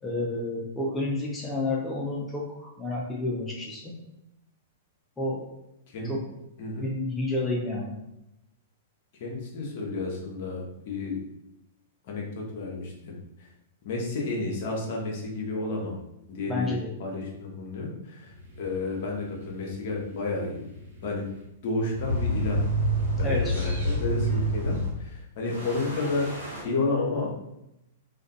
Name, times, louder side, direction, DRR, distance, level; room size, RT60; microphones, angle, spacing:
voice 1, 0.0-3.9 5.2-5.4 6.0-6.2 6.8-8.0 16.5-16.9 23.2-23.5, left 2 dB, 10° left, -3 dB, 0.5 m, -30 dB
voice 2, 9.2-11.2 12.0-13.5 13.8-15.9 16.3-16.7 17.0-18.3 18.6-20.7 21.0-21.3 21.6-22.6 23.2-27.3, left 3 dB, 55° left, -1 dB, 0.7 m, -31 dB
sound 1, 18.3-21.4 21.9-25.0 25.4-26.6, right 1 dB, 75° right, 1.4 m, -29 dB
2.5 x 2.3 x 2.2 m, 0.86 s
hypercardioid pair, 110°, 0 cm